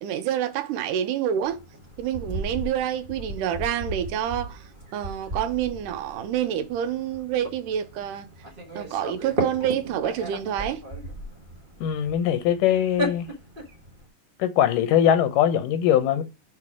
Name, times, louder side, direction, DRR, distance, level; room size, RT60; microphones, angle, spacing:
voice 1, 0.0-1.6 2.0-4.6 4.9-8.3 8.8-10.8, right 10 dB, 85° right, 2.2 m, -27 dB
sound 1, 1.4-14.0, right 1 dB, 50° right, 0.6 m, -36 dB
voice 2, 11.8-13.3 14.4-16.2, left 10 dB, 90° left, 2.5 m, -21 dB
5.8 x 4.7 x 4.7 m
omnidirectional pair, 3.7 m